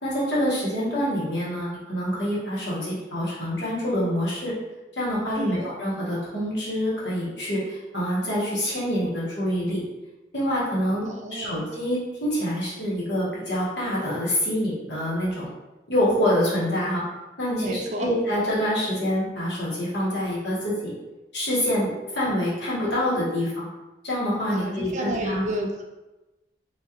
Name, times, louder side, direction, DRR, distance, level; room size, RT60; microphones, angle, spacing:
voice 1, 0.0-4.6 4.9-9.8 10.3-11.0 11.3-15.5 15.9-17.0 17.4-20.9 21.3-23.7 24.0-25.5, equal, 85° left, -7 dB, 1.4 m, -26 dB
voice 2, 11.0-11.6 17.6-18.1 24.5-25.8, right 1 dB, 40° right, 1 dB, 0.4 m, -31 dB
3.0 x 2.7 x 3.7 m, 1.1 s
head